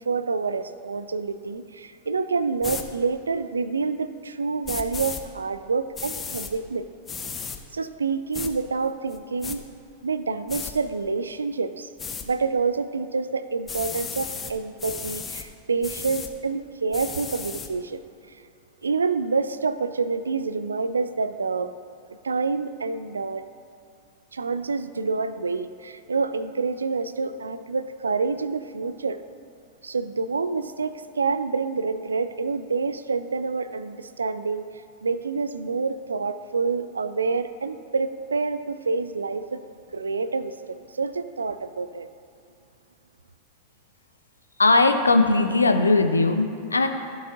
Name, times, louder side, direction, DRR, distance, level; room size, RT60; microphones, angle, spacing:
voice 1, 0.0-6.9 7.7-9.7 10.0-11.9 12.2-18.0 18.3-18.4 18.8-21.7 22.2-23.5 24.3-29.2 29.8-34.7 35.0-39.6 39.9-40.6 40.9-42.1, right 4 dB, 75° right, 12 dB, 0.3 m, -27 dB
sound 1, 2.6-2.8 4.6-5.2 5.9-6.5 7.1-7.6 8.3-8.5 9.1-9.6 10.5-10.7 12.0-12.3 13.7-14.5 14.8-15.4 15.8-16.3 16.9-17.7, left 5 dB, 20° left, 0.7 m, -34 dB
voice 2, 44.6-46.9, left 3 dB, 80° left, 7 dB, 0.6 m, -19 dB
14.5 x 7.2 x 2.5 m, 2.6 s
figure-of-eight pair, 90°, 0 cm